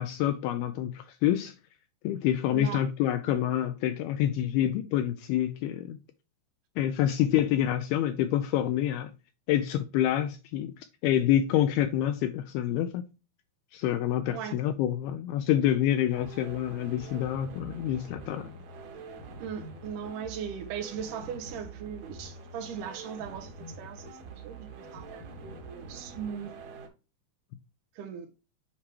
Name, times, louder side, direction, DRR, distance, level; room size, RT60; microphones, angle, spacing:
voice 1, 0.0-1.5 2.0-6.0 6.8-9.1 9.5-13.0 13.7-18.6, left 11 dB, 80° left, 2.3 m, -27 dB
voice 2, 2.5-2.8 14.3-14.6 19.4-23.5 23.8-26.5 28.0-28.3, right 8 dB, 80° right, 1.9 m, -38 dB
sound 1, 16.1-26.9, right 3 dB, 60° right, 2.2 m, -45 dB
7.3 x 4.8 x 2.8 m
omnidirectional pair, 4.7 m